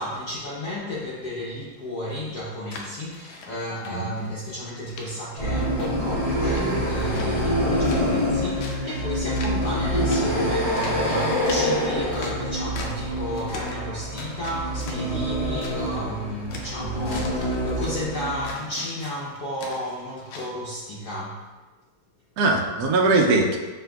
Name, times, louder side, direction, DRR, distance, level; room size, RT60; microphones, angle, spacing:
voice 1, 0.0-21.5, equal, 65° left, -7 dB, 1.0 m, -33 dB
sound 1, 2.1-4.3 4.6-5.1 5.5-7.6 7.8-9.0 9.3-9.8 10.1-13.1 13.3-13.8 14.2-16.0 16.3-20.5, left 3 dB, 90° left, 1.4 m, -41 dB
sound 2, 5.4-18.5, equal, 45° left, 0.4 m, -26 dB
voice 2, 6.5-6.8 22.4-23.6, right 3 dB, 80° right, 1 dB, 0.8 m, -21 dB
6.6 x 2.6 x 2.2 m, 1.3 s
omnidirectional pair, 2.2 m